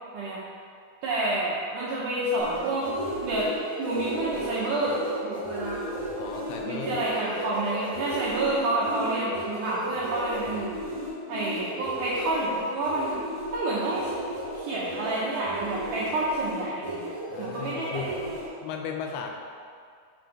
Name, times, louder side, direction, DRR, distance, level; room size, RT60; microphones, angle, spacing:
voice 1, 1.0-2.9 3.2-3.5 3.8-5.8 6.6-10.7 11.3-13.2 13.5-14.1 14.6-17.1 17.4-18.1, right 2 dB, 85° right, -7 dB, 1.8 m, -29 dB
sound 1, 2.4-18.4, right 1 dB, 50° right, 1.0 m, -34 dB
voice 2, 6.2-7.1 17.3-18.3 18.6-19.3, left 6 dB, 85° left, 2 dB, 2.4 m, -36 dB
6.2 x 4.7 x 4.7 m, 2.2 s
omnidirectional pair, 4.7 m